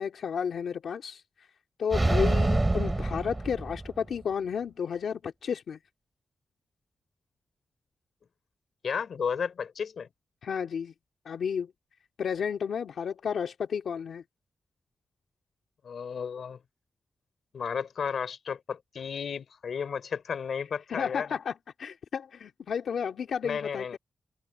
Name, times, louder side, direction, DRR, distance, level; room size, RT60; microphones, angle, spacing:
voice 1, 0.0-1.5 1.8-5.8 10.4-10.9 11.3-11.7 12.2-14.2 20.9-24.0, left 7 dB, 90° left, 2.1 m, -32 dB
sound 1, 1.9-4.1, right 2 dB, 15° right, 5.5 m, -26 dB
voice 2, 8.8-10.1 15.8-16.6 17.5-21.3 23.4-24.0, left 6 dB, 65° left, 3.4 m, -33 dB
wide cardioid pair, 175°, 0 cm